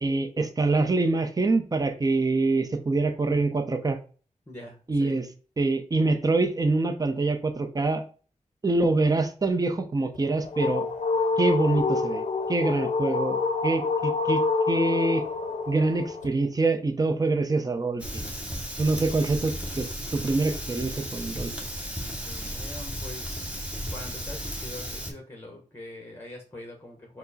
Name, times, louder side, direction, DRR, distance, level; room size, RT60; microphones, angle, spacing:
voice 1, 0.0-4.0 4.9-5.3 5.6-8.0 8.6-10.9 11.4-12.2 12.5-15.2 15.7-18.3 18.8-19.9 20.1-21.5, right 3 dB, 30° right, 7 dB, 0.6 m, -25 dB
voice 2, 4.5-5.2 21.9-23.5 23.9-27.2, left 1 dB, 15° left, 1 dB, 0.9 m, -43 dB
sound 1, 10.2-16.3, left 4 dB, 70° left, 0.5 m, -27 dB
Fire, 18.0-25.1, equal, 10° right, 1.1 m, -35 dB
4.5 x 2.1 x 4.0 m, 0.39 s
wide cardioid pair, 80°, 13 cm